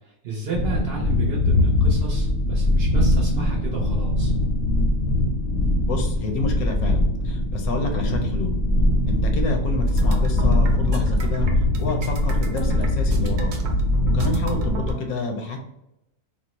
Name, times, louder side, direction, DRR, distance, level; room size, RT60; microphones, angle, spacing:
voice 1, 0.0-4.3, right 4 dB, 55° right, -2 dB, 0.8 m, -32 dB
sound 1, 0.5-14.9, left 1 dB, 60° left, 0.7 m, -22 dB
voice 2, 5.8-8.6 9.1-11.5 11.8-13.5 14.1-15.6, left 3 dB, 85° left, 3 dB, 1.1 m, -29 dB
sound 2, 9.9-15.0, left 1 dB, 85° right, 0.4 m, -29 dB
3.6 x 2.0 x 2.9 m, 0.86 s
omnidirectional pair, 1.5 m